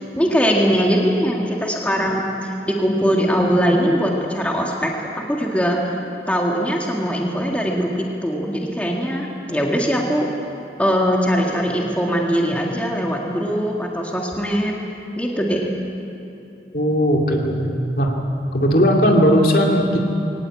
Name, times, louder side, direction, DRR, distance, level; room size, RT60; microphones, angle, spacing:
voice 1, 0.0-5.8 6.3-10.3 10.8-14.7 15.2-15.7, equal, 10° left, -1 dB, 1.9 m, -21 dB
voice 2, 16.7-18.1 18.5-20.0, equal, 55° left, 1 dB, 2.5 m, -17 dB
22.0 x 19.0 x 8.7 m, 2.7 s
head